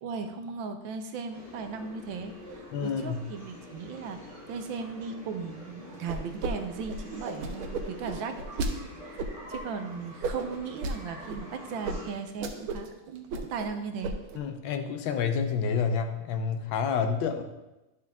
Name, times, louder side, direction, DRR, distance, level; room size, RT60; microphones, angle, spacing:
voice 1, 0.0-9.2 9.5-14.2, right 5 dB, 75° right, 7 dB, 1.3 m, -37 dB
sound 1, 1.3-12.1, left 1 dB, 35° left, 2.3 m, -46 dB
voice 2, 2.7-3.2 14.3-17.4, left 6 dB, 75° left, 7 dB, 1.4 m, -29 dB
sound 2, 6.1-6.5 6.8-8.7 9.2-9.6 10.2-11.0 11.3-11.4 11.8-12.0 12.3-12.9 13.2-13.7 14.0-14.4, right 3 dB, 90° right, 1.6 m, -33 dB
11.0 x 4.8 x 3.5 m, 1.0 s
omnidirectional pair, 2.3 m